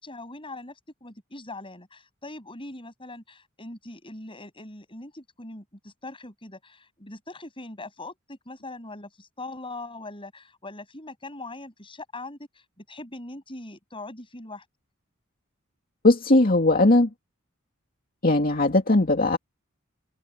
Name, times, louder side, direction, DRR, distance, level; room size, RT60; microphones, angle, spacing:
voice 1, 0.0-14.6, left 2 dB, 25° left, 7.9 m, -41 dB
voice 2, 16.0-17.1 18.2-19.4, left 2 dB, 45° left, 2.4 m, -19 dB
head